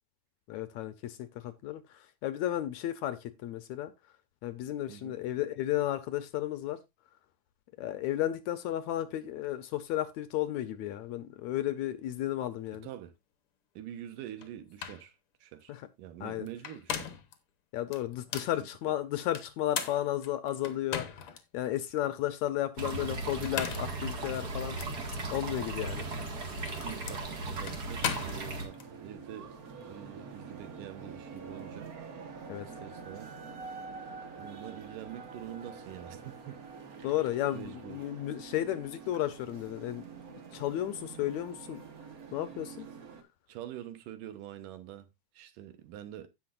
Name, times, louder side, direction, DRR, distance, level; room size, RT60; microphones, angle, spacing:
voice 1, 0.5-1.8 2.2-3.9 4.4-6.8 7.8-12.9 15.7-15.8 16.2-16.5 17.7-21.1 21.5-24.8 25.3-26.0 32.5-32.7 37.0-40.0 40.5-41.8 42.3-42.9, left 13 dB, 75° left, 1.9 m, -33 dB
voice 2, 4.9-5.2 12.8-13.1 13.8-15.1 15.4-17.1 18.5-18.7 26.8-29.5 29.8-31.9 32.6-33.3 34.4-36.6 37.5-38.1 43.5-45.1 45.3-46.3, right 11 dB, 85° right, 2.7 m, -45 dB
sound 1, 14.4-14.5 14.8-15.1 16.5-17.3 17.9-18.6 19.3-21.4 21.9-22.0 23.3-24.0 24.8-24.9 26.1-28.9, left 8 dB, 60° left, 1.6 m, -37 dB
sound 2, 22.8-28.7, right 2 dB, 35° right, 1.9 m, -37 dB
sound 3, 28.2-43.2, right 5 dB, 65° right, 0.8 m, -46 dB
16.5 x 5.9 x 2.5 m
omnidirectional pair, 3.7 m